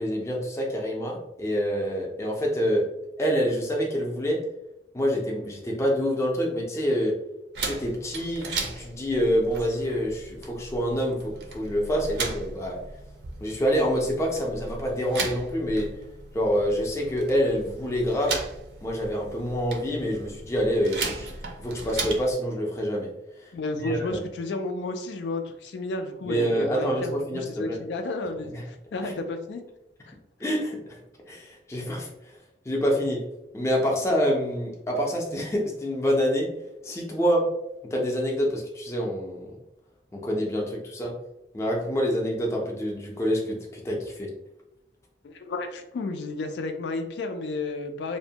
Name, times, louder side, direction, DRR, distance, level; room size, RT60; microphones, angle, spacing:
voice 1, 0.0-2.8 3.2-4.4 4.9-7.1 7.6-12.8 13.4-15.9 16.3-18.4 18.8-21.3 21.6-23.1 23.4-23.5 23.8-24.2 26.2-27.8 28.5-28.6 29.0-29.2 30.4-31.0 31.3-32.1 32.7-33.2 33.5-36.5 36.8-37.5 37.9-39.5 40.1-41.1 41.5-44.3, equal, 15° left, -1 dB, 0.4 m, -26 dB
sound 1, 7.5-22.3, right 3 dB, 70° right, 0.5 m, -36 dB
voice 2, 23.5-29.6 30.1-30.2 40.6-40.7 45.2-48.2, left 2 dB, 85° left, 5 dB, 0.3 m, -32 dB
2.6 x 2.1 x 2.7 m, 0.87 s
head